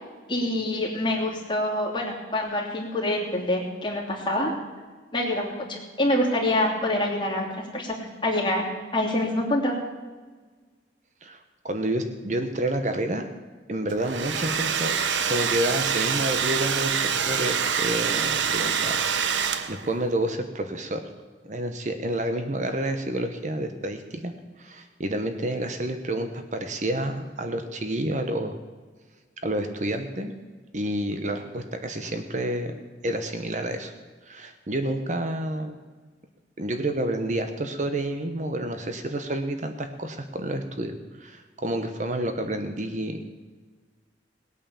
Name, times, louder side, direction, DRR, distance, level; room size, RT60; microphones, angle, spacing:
voice 1, 0.3-4.5 5.1-9.7, left 1 dB, 25° left, -2 dB, 3.0 m, -26 dB
voice 2, 11.2-13.3 13.7-14.9 15.3-21.0 21.4-28.6 29.4-30.3 30.7-32.7 33.0-33.9 34.2-35.8 36.6-43.3, right 1 dB, 40° right, 7 dB, 1.0 m, -29 dB
Domestic sounds home sounds, 13.9-20.0, right 7 dB, 80° right, 0.9 m, -26 dB
19.0 x 8.9 x 7.1 m, 1.4 s
head